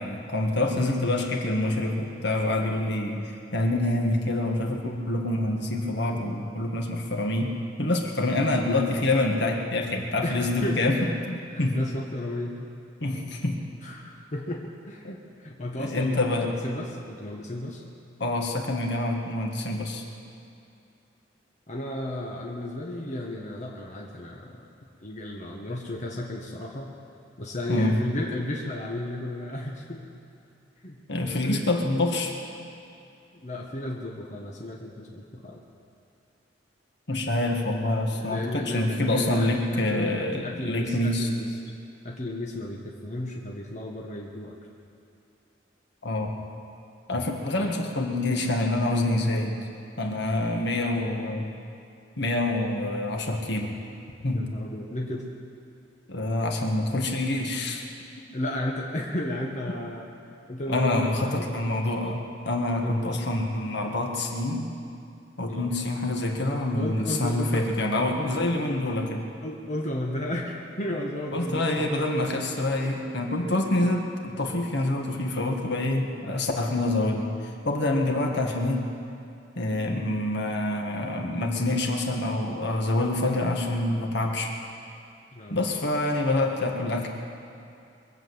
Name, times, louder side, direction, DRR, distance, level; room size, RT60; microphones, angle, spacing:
voice 1, 0.0-7.5 7.8-11.8 13.0-13.6 15.0-15.1 15.8-16.5 18.2-20.0 27.7-28.1 31.1-32.3 37.1-41.3 46.0-46.4 47.1-49.6 50.0-51.5 52.2-53.8 54.2-54.5 56.1-57.8 60.7-64.7 65.4-69.2 71.3-78.8 79.6-84.5 85.5-87.1, left 2 dB, 65° left, 2 dB, 1.8 m, -26 dB
voice 2, 10.2-11.2 11.5-12.7 13.8-17.8 21.7-24.6 25.0-26.9 27.4-30.1 30.8-31.0 31.3-31.7 33.4-35.6 38.1-41.5 42.0-44.6 47.5-47.7 54.3-55.2 58.3-60.1 60.5-61.4 62.7-63.2 65.5-65.7 66.4-66.5 66.8-67.7 68.2-68.3 69.4-72.2 72.8-72.9 73.4-73.7 85.3-85.6, left 1 dB, 40° left, -1 dB, 1.3 m, -34 dB
22.5 x 7.8 x 7.9 m, 2.6 s
head